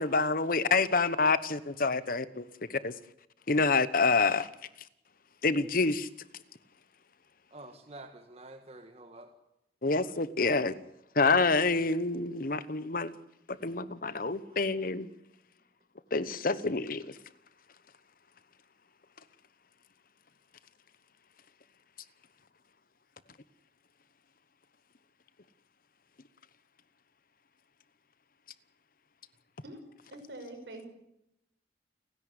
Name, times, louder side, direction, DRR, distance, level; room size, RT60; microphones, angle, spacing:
voice 1, 0.0-2.4 2.7-2.9 3.5-4.5 5.4-6.1 9.8-10.7 11.1-13.1 13.5-15.1 16.1-17.2, left 3 dB, 50° left, 15 dB, 1.1 m, -27 dB
voice 2, 7.5-9.3 9.8-10.1 13.0-13.1 14.5-14.6, right 2 dB, 35° right, 5 dB, 1.7 m, -49 dB
voice 3, 30.1-30.9, right 1 dB, 70° right, 5 dB, 6.0 m, -44 dB
29.5 x 11.0 x 9.7 m, 0.82 s
head